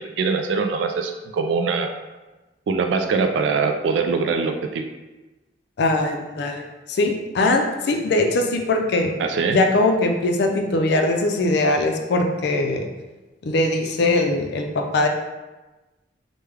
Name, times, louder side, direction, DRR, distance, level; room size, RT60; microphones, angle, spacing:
voice 1, 0.0-1.9 2.7-4.8 9.2-9.6, right 4 dB, 75° right, 6 dB, 0.3 m, -23 dB
voice 2, 5.8-6.6 6.9-9.1 9.5-12.9 13.4-15.1, left 2 dB, 65° left, 3 dB, 0.4 m, -21 dB
3.4 x 2.1 x 3.2 m, 1.1 s
head